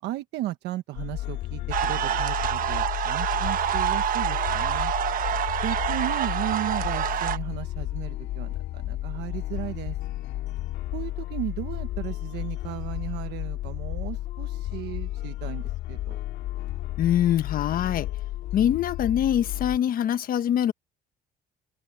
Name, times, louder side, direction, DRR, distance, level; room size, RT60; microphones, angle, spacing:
voice 1, 0.0-4.9 5.6-10.0 10.9-16.2, right 15 dB, 85° right, 1.1 m, -35 dB
sound 1, 0.9-19.8, left 15 dB, 80° left, 2.7 m, -33 dB
sound 2, 1.7-7.4, right 10 dB, 55° right, 1.3 m, -27 dB
voice 2, 17.0-18.1 18.5-20.7, left 10 dB, 60° left, 1.2 m, -24 dB
open air
cardioid pair, 110°, 17 cm